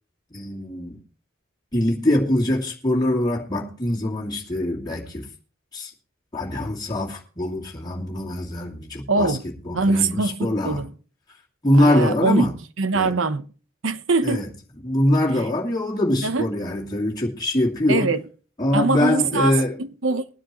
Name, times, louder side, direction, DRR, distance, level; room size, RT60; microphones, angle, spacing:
voice 1, 0.3-1.0 1.7-5.3 5.7-5.9 6.3-9.4 9.6-10.8 11.6-12.5 12.9-13.2 14.2-14.5 14.8-18.1 18.6-19.8, left 1 dB, 20° left, 2.5 m, -23 dB
voice 2, 9.1-9.4 9.7-10.9 11.8-12.5 12.8-13.5 13.8-14.5 16.2-16.5 17.9-18.2 18.7-20.3, right 3 dB, 80° right, 1.0 m, -22 dB
22.0 x 9.9 x 3.1 m
head